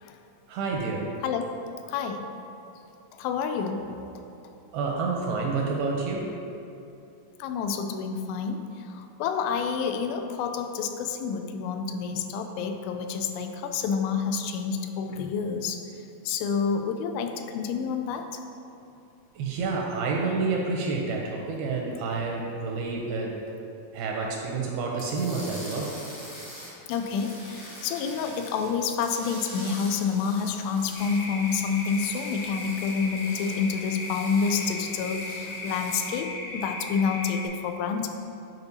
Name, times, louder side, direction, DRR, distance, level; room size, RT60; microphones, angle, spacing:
voice 1, 0.5-1.1 4.7-6.3 19.4-23.4 23.9-25.9, right 4 dB, 80° right, -1 dB, 2.3 m, -29 dB
voice 2, 1.2-1.5 1.9-2.2 3.2-3.9 5.4-5.5 7.4-8.6 8.9-15.8 16.3-18.3 26.9-38.1, left 6 dB, 85° left, 6 dB, 2.6 m, -28 dB
sound 1, 25.0-28.7 29.0-36.1, equal, 50° left, 1.1 m, -44 dB
sound 2, 30.9-37.5, left 2 dB, 65° left, 2.9 m, -37 dB
10.5 x 5.2 x 2.7 m, 2.7 s
omnidirectional pair, 4.7 m